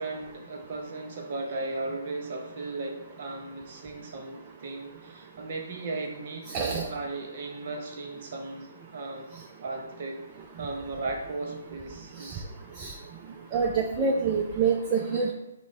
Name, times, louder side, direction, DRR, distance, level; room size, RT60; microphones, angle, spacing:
voice 1, 0.0-9.3 9.6-10.2 10.6-12.4, right 2 dB, 45° right, 2 dB, 0.8 m, -36 dB
voice 2, 6.5-6.8 12.2-12.3 12.8-12.9 13.5-15.3, right 5 dB, 25° right, 0 dB, 0.4 m, -26 dB
5.8 x 2.1 x 3.9 m, 0.91 s
figure-of-eight pair, 135°, 0 cm